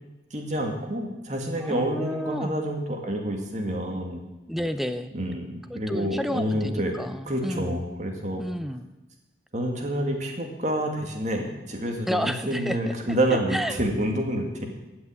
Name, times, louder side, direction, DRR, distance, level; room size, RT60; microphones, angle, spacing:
voice 1, 0.3-4.2 5.1-6.9 7.3-8.4 9.5-14.7, right 1 dB, 40° right, 2 dB, 2.1 m, -28 dB
voice 2, 1.6-2.6 4.5-5.1 5.7-7.8 8.4-8.9 12.1-12.9 13.5-13.8, equal, ahead, 10 dB, 0.5 m, -31 dB
16.0 x 6.1 x 9.2 m, 1.0 s
head